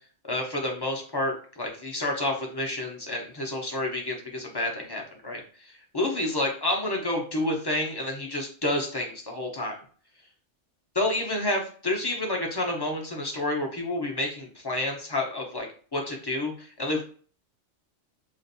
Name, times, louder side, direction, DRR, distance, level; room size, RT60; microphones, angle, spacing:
voice 1, 0.2-5.4 5.7-9.8 11.0-15.7 15.9-17.0, left 1 dB, 25° left, 0 dB, 0.6 m, -29 dB
5.0 x 2.5 x 2.6 m, 0.43 s
omnidirectional pair, 1.3 m